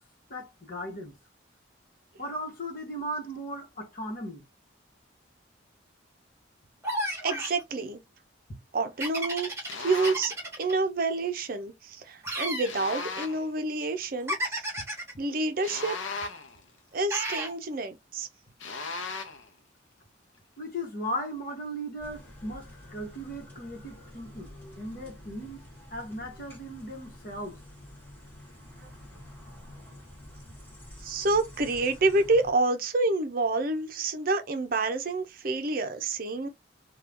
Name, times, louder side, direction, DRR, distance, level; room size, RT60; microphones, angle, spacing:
voice 1, 0.3-1.2 2.2-4.4 8.5-8.6 14.8-14.9 20.6-25.6 25.9-27.6, equal, 45° left, 1.1 m, -37 dB
sound 1, 6.8-7.6 9.0-10.7 12.2-12.7 14.3-15.1 17.1-17.5, right 1 dB, 15° right, 1.1 m, -32 dB
voice 2, 7.2-8.0 8.7-14.6 15.2-16.0 16.9-18.3 31.0-36.5, right 3 dB, 45° right, 0.6 m, -28 dB
sound 2, 9.7-10.3 12.6-13.5 15.6-16.6 18.6-19.5, left 4 dB, 80° left, 0.6 m, -36 dB
sound 3, 22.0-32.5, left 1 dB, 10° left, 1.3 m, -48 dB
2.7 x 2.3 x 3.4 m
head